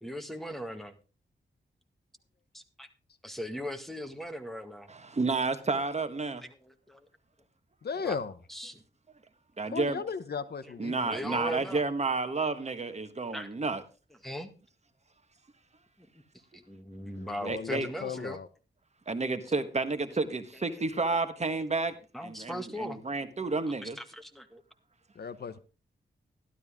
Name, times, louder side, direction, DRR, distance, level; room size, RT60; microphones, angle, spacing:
voice 1, 0.0-0.9 2.5-2.9 3.2-4.9 6.9-7.1 8.0-8.2 8.5-8.8 11.1-11.8 13.3-13.5 14.2-14.5 16.0-16.1 16.5-18.4 22.1-23.0 23.8-24.6, equal, ahead, 1.8 m, -38 dB
voice 2, 4.9-6.4 9.6-10.0 10.8-13.8 17.4-17.9 19.1-21.9 22.2-24.0, right 3 dB, 35° right, 1.4 m, -31 dB
voice 3, 7.8-8.3 9.7-11.5 17.2-18.5 25.1-25.6, left 6 dB, 55° left, 0.9 m, -36 dB
13.0 x 12.0 x 3.6 m
wide cardioid pair, 90°, 19 cm